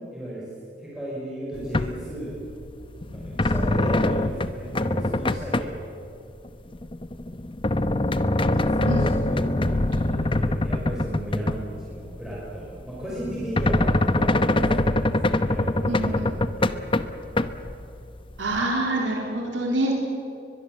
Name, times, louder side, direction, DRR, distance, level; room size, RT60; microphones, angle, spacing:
voice 1, 0.1-0.5 0.8-2.4 3.0-5.7 8.4-16.2 16.6-16.9, right 1 dB, 5° right, -7 dB, 5.4 m, -35 dB
sound 1, 1.5-2.1 2.5-5.7 6.4-12.0 12.3-12.4 13.0-17.7 18.3-18.4, left 1 dB, 30° left, 0.9 m, -23 dB
voice 2, 15.9-16.2 18.4-19.9, right 1 dB, 85° right, 0 dB, 3.7 m, -26 dB
22.5 x 22.0 x 7.7 m, 2.7 s
head